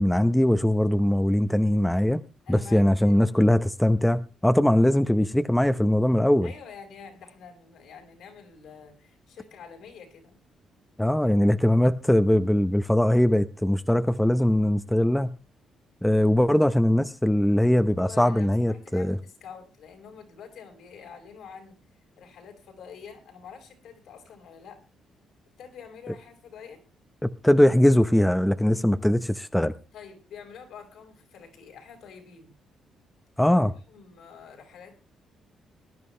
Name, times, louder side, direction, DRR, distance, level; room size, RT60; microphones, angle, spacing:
voice 1, 0.0-2.2 2.5-6.5 11.0-15.3 16.0-19.2 27.2-29.7 33.4-33.7, left 1 dB, 5° left, 0.8 m, -21 dB
voice 2, 2.4-3.3 6.4-10.4 18.0-21.8 22.2-24.8 25.6-26.8 29.9-32.5 33.3-35.0, left 6 dB, 75° left, 5.1 m, -47 dB
20.0 x 11.0 x 3.3 m
cardioid pair, 90°, 0 cm